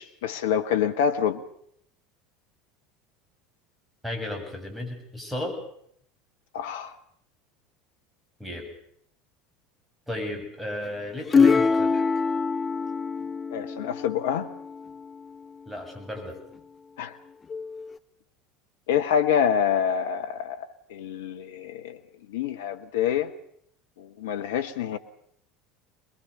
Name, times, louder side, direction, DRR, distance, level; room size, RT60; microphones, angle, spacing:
voice 1, 0.0-1.4 6.5-6.9 13.5-14.5 17.0-17.1 18.9-22.0 22.3-23.3 24.0-25.0, left 8 dB, 70° left, 1.1 m, -26 dB
voice 2, 4.0-5.6 8.4-8.7 10.1-12.0 15.7-16.4, left 1 dB, 5° right, 7.6 m, -34 dB
sound 1, 11.3-15.0 17.5-17.9, left 5 dB, 25° left, 1.0 m, -24 dB
24.0 x 21.5 x 6.8 m
figure-of-eight pair, 75°, 0 cm